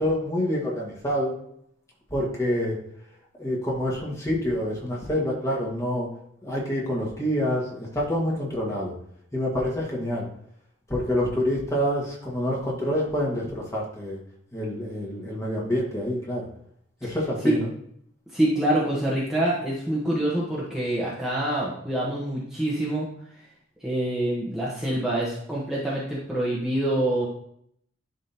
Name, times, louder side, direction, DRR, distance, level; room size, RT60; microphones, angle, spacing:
voice 1, 0.0-1.3 2.1-2.8 3.4-6.1 6.4-8.9 9.3-10.2 10.9-14.2 14.5-16.5 17.0-17.7, equal, 15° left, -4 dB, 1.6 m, -27 dB
voice 2, 18.3-23.1 23.8-27.3, right 1 dB, 5° right, -7 dB, 1.1 m, -26 dB
10.5 x 3.7 x 2.8 m, 0.69 s
head